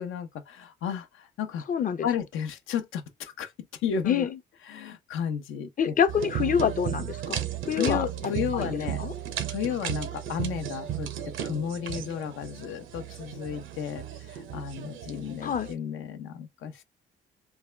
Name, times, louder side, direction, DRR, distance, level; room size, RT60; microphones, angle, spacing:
voice 1, 0.0-1.7 2.0-3.5 3.8-4.3 4.7-5.9 7.8-9.0 9.5-16.8, left 8 dB, 85° left, 0.7 m, -33 dB
voice 2, 1.7-2.1 4.0-4.4 5.8-7.4 7.7-8.1 8.5-8.7 9.0-9.1 15.4-15.7, left 8 dB, 45° left, 0.6 m, -26 dB
sound 1, 6.1-15.7, right 10 dB, 80° right, 0.7 m, -35 dB
3.4 x 2.3 x 3.2 m
cardioid pair, 90°, 20 cm